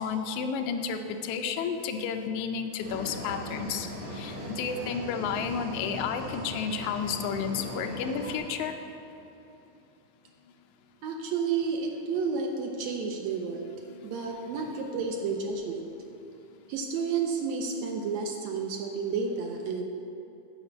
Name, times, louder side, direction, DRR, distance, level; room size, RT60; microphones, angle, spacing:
voice 1, 0.0-8.7 14.2-14.8, left 6 dB, 80° left, 6 dB, 1.9 m, -32 dB
sound 1, 2.8-8.4, equal, 40° right, 2.4 m, -39 dB
voice 2, 11.0-13.6 14.0-15.9 16.7-19.8, right 5 dB, 80° right, 2 dB, 1.6 m, -31 dB
8.1 x 5.1 x 7.2 m, 2.9 s
omnidirectional pair, 3.5 m